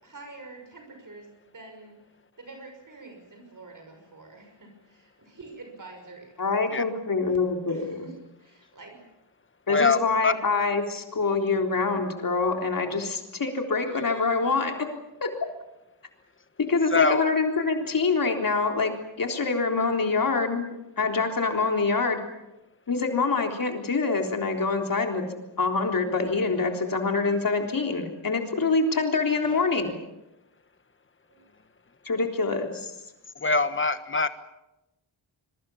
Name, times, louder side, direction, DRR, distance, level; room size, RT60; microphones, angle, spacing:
voice 1, 0.0-2.0 2.4-6.3 7.7-9.0 11.9-12.3 13.8-14.4 29.3-29.7 31.3-31.5, right 3 dB, 45° right, 3 dB, 6.2 m, -46 dB
voice 2, 6.4-8.1 9.7-14.7 15.2-15.3 16.6-22.2 22.9-25.3 25.6-29.9 32.1-32.9, left 4 dB, 45° left, 3 dB, 3.8 m, -25 dB
voice 3, 16.9-17.2 33.4-34.3, left 4 dB, 25° left, 11 dB, 1.4 m, -23 dB
26.0 x 22.5 x 7.2 m, 0.95 s
wide cardioid pair, 155°, 45 cm